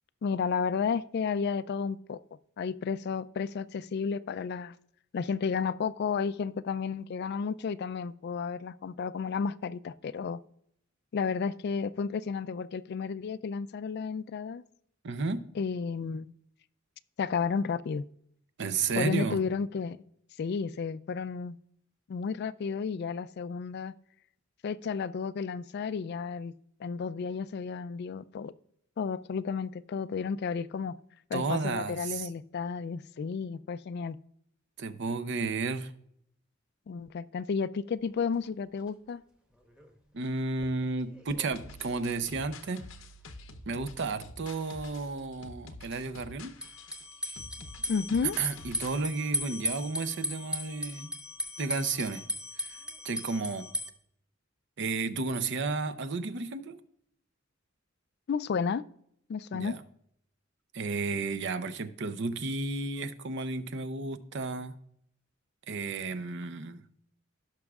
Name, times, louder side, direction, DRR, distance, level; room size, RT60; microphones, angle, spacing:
voice 1, 0.2-2.2 2.6-4.7 5.1-10.4 11.1-14.6 15.6-16.3 17.2-18.0 19.0-20.0 20.4-21.6 22.1-23.9 24.6-26.5 26.8-28.5 29.0-30.9 31.3-34.2 36.9-39.2 47.9-48.4 58.3-58.8 59.3-59.8, left 5 dB, 55° left, 0.3 m, -32 dB
voice 2, 15.0-15.4 18.6-19.4 31.3-32.3 34.8-35.9 40.1-42.8 43.7-46.5 48.4-51.1 51.6-52.2 52.6-52.8 53.0-53.6 54.8-56.8 59.6-59.8 60.7-64.8 65.7-66.8, right 3 dB, 60° right, 0.6 m, -32 dB
sound 1, 38.0-38.1 38.4-38.5 38.8-38.9 39.5-39.9 40.2-42.2 42.4-42.5 46.6-53.9, left 1 dB, 5° right, 1.0 m, -38 dB
sound 2, 41.5-49.0, left 2 dB, 75° left, 0.8 m, -48 dB
16.5 x 6.1 x 2.4 m
head